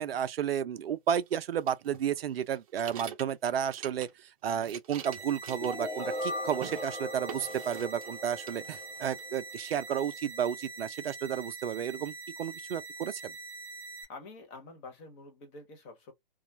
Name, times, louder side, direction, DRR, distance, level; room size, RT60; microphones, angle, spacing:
voice 1, 0.0-4.1 4.4-13.3, right 9 dB, 80° right, 0.5 m, -32 dB
sound 1, 1.7-4.3 4.5-6.2 6.5-6.8 7.3-8.2 8.5-9.2, right 8 dB, 40° right, 0.6 m, -45 dB
sound 2, 5.0-14.0, right 3 dB, 15° right, 1.0 m, -44 dB
sound 3, 5.6-9.5, left 1 dB, 10° left, 0.6 m, -39 dB
voice 2, 14.1-16.1, left 3 dB, 30° left, 0.9 m, -48 dB
2.3 x 2.0 x 2.7 m
hypercardioid pair, 135°, 29 cm